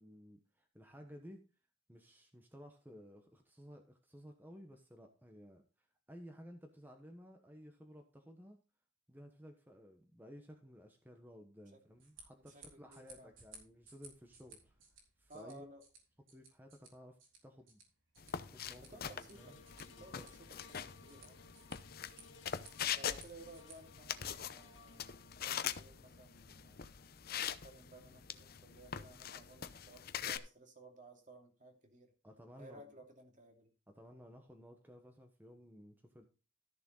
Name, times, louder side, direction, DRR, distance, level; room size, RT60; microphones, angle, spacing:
voice 1, 0.0-1.5 1.9-8.6 9.1-14.8 15.2-15.7 16.3-17.8 18.4-19.6 20.0-20.3 32.2-33.0 33.9-36.3, equal, 10° right, 4 dB, 1.2 m, -56 dB
sound 1, 11.9-23.7, right 4 dB, 85° right, 4.0 m, -61 dB
voice 2, 12.4-13.3 15.3-15.8 18.8-21.5 22.9-26.9 27.3-32.1 32.6-33.7, right 2 dB, 40° right, 4 dB, 2.5 m, -57 dB
sound 2, 18.2-30.4, left 8 dB, 50° left, 0.7 m, -43 dB
sound 3, 19.3-29.7 30.2-30.3, left 4 dB, 70° left, 1.6 m, -63 dB
13.5 x 6.8 x 3.9 m, 0.33 s
head